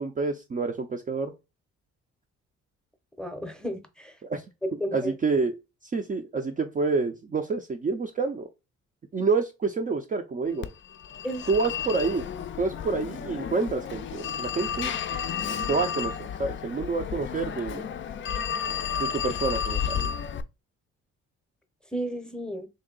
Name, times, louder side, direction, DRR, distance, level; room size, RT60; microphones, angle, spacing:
voice 1, 0.0-1.3 4.2-4.4 4.9-5.5 5.8-8.5 9.1-10.7 11.5-12.3 12.6-15.0 15.7-17.9 19.0-20.1, right 4 dB, 25° right, 0.4 m, -28 dB
voice 2, 3.2-4.1 4.6-5.1 10.5-10.6 11.2-11.5 21.9-22.7, equal, 5° left, 0.7 m, -33 dB
Telephone, 10.6-20.4, left 8 dB, 40° left, 0.4 m, -32 dB
3.2 x 2.7 x 3.8 m
cardioid pair, 90°, 30 cm